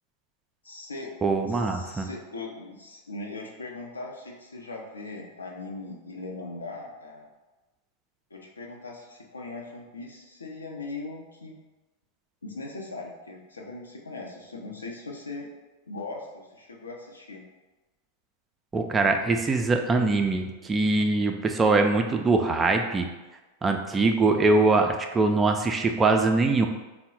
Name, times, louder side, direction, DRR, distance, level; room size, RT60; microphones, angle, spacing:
voice 1, 0.6-1.1 1.5-7.3 8.3-11.5 12.4-15.5 15.9-17.4, left 3 dB, 75° left, 0 dB, 0.6 m, -39 dB
voice 2, 1.2-2.1 18.7-23.1 23.6-26.7, right 3 dB, 15° right, 4 dB, 0.3 m, -23 dB
3.6 x 2.1 x 4.3 m, 1.1 s
figure-of-eight pair, 90°, 0 cm